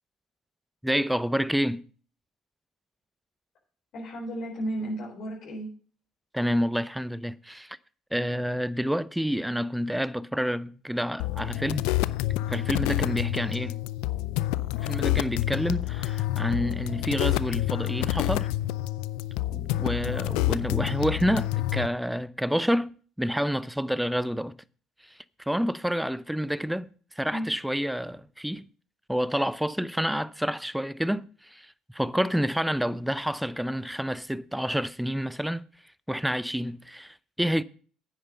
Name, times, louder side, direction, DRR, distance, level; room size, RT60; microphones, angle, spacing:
voice 1, 0.8-1.8 6.3-7.8 8.1-11.8 12.5-13.8 14.8-18.5 19.5-24.5 25.5-26.9 27.2-28.7 29.1-35.6 36.1-37.6, equal, 5° right, 0.6 m, -28 dB
voice 2, 3.9-5.7 27.3-27.5, right 1 dB, 65° left, 4.6 m, -33 dB
sound 1, 11.2-21.9, left 15 dB, 80° left, 0.4 m, -28 dB
9.6 x 9.0 x 5.4 m
hypercardioid pair, 65°, 0 cm